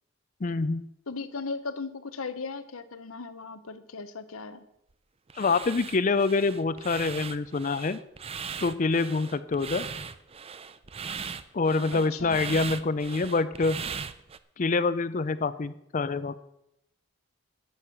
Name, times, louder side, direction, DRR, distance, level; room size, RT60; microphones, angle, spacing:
voice 1, 0.4-0.8 5.4-8.0 8.6-9.8 11.5-13.8 14.6-16.5, left 3 dB, 35° left, 14 dB, 0.5 m, -26 dB
voice 2, 1.1-4.7 11.9-12.4, left 4 dB, 80° left, 12 dB, 1.0 m, -37 dB
sound 1, 5.3-14.4, right 6 dB, 30° right, 0.5 m, -39 dB
12.5 x 8.0 x 5.9 m, 0.81 s
head